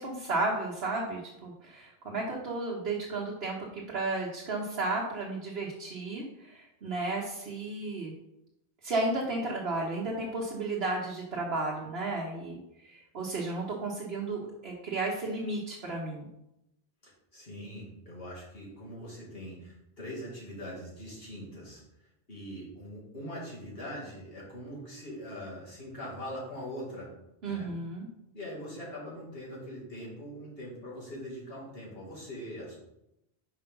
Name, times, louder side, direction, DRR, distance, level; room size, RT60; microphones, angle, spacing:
voice 1, 0.0-8.1 8.8-16.3 27.4-28.1, right 2 dB, 70° right, -3 dB, 1.3 m, -33 dB
voice 2, 17.0-21.8 22.3-27.1 27.4-27.7 28.3-32.8, equal, 65° left, -5 dB, 2.7 m, -42 dB
5.7 x 4.9 x 5.3 m, 0.86 s
omnidirectional pair, 1.1 m